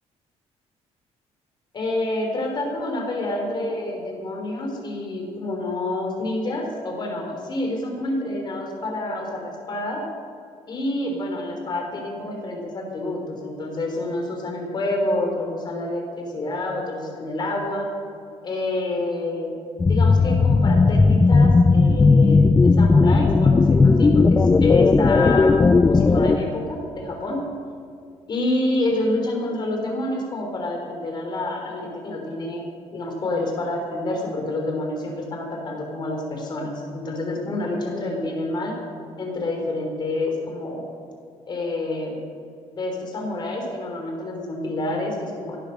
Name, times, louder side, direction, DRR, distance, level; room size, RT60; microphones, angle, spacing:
voice 1, 1.7-10.0 10.7-17.9 18.4-19.5 19.9-25.6 25.8-27.4 28.3-38.7 39.2-40.8 41.5-42.2 42.8-45.6, left 2 dB, 40° left, 1 dB, 3.5 m, -28 dB
sound 1, 19.8-26.4, left 3 dB, 20° left, 0.4 m, -16 dB
16.5 x 9.5 x 6.4 m, 2.5 s
cardioid pair, 135°, 12 cm